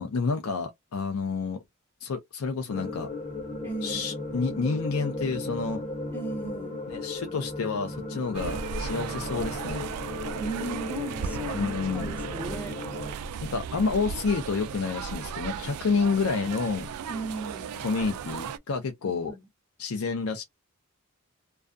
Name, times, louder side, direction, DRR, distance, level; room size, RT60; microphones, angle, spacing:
voice 1, 0.0-1.6 2.0-3.1 3.8-5.8 6.9-9.8 11.5-12.1 13.4-16.9 17.8-19.3 19.8-20.4, left 4 dB, 75° left, 0.5 m, -29 dB
sound 1, 2.7-13.1, left 2 dB, 30° left, 0.9 m, -36 dB
voice 2, 3.6-4.2 6.1-6.8 10.4-12.8 17.1-17.7 19.0-19.5, right 2 dB, 10° left, 0.6 m, -37 dB
sound 2, 8.3-18.6, right 6 dB, 85° right, 0.3 m, -36 dB
2.3 x 2.2 x 2.4 m
head